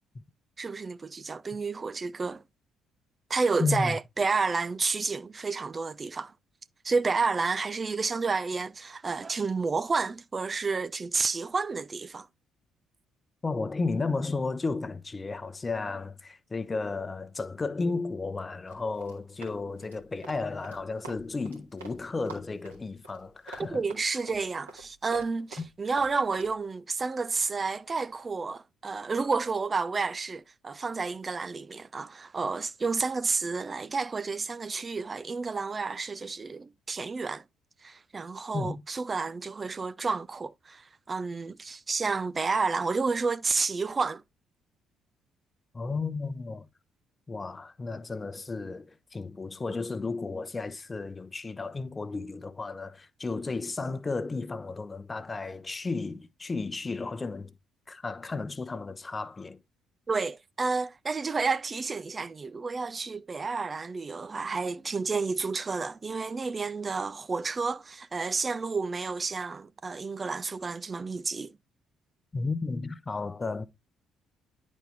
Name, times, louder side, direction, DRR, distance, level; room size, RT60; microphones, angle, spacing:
voice 1, 0.6-2.4 3.3-6.3 6.8-12.3 23.7-37.4 37.8-44.2 60.1-71.5, right 4 dB, 30° right, 0.3 m, -30 dB
voice 2, 3.6-4.0 13.4-23.8 38.5-38.8 45.7-46.7 47.3-57.5 57.9-59.6 72.3-73.6, left 3 dB, 25° left, 0.8 m, -33 dB
Run, 18.7-22.0 22.2-26.5, right 3 dB, 85° right, 2.1 m, -46 dB
10.0 x 4.2 x 3.4 m
figure-of-eight pair, 45°, 0 cm